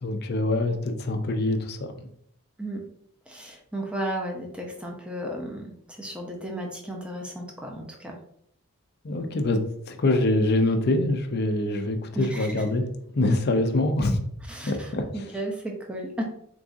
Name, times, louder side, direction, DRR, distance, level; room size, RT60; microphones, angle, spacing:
voice 1, 0.0-1.9 9.0-9.6 9.9-12.9 13.1-14.2 14.6-15.2, left 2 dB, 50° left, 5 dB, 0.5 m, -24 dB
voice 2, 3.3-5.7 6.0-8.2 12.2-12.5 14.5-16.2, right 1 dB, 5° right, 0 dB, 0.6 m, -34 dB
3.9 x 3.5 x 2.6 m, 0.69 s
head